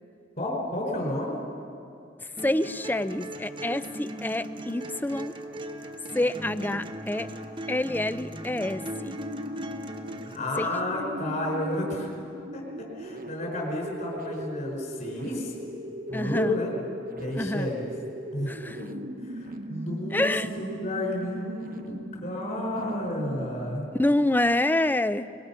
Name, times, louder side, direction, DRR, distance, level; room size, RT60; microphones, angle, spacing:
voice 1, 0.4-1.4 10.3-12.1 12.5-15.5 16.1-16.7 17.1-17.9 18.3-23.9, left 1 dB, 45° left, -1 dB, 4.8 m, -31 dB
voice 2, 2.4-5.3 6.1-7.3 7.7-9.2 10.6-10.7 16.1-16.6 17.4-17.7 18.5-18.8 20.1-20.5 24.0-25.3, left 1 dB, 10° left, 14 dB, 0.5 m, -27 dB
sound 1, 2.4-10.4, right 1 dB, 25° right, 1.2 m, -38 dB
sound 2, 8.9-23.8, equal, 50° right, 1.0 m, -39 dB
24.0 x 21.5 x 5.8 m, 2.5 s
head